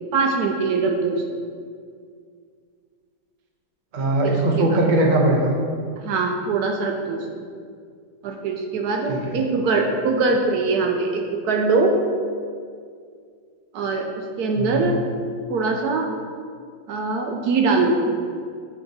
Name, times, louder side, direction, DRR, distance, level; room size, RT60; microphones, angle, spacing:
voice 1, 0.1-1.2 4.2-4.8 6.0-7.4 8.2-12.0 13.7-15.0 15.5-16.1 16.9-18.0, right 3 dB, 70° right, 2 dB, 1.0 m, -22 dB
voice 2, 3.9-5.5 9.1-9.4 14.6-14.9, right 1 dB, 45° right, -1 dB, 0.6 m, -20 dB
7.9 x 3.5 x 3.9 m, 2.1 s
omnidirectional pair, 1.9 m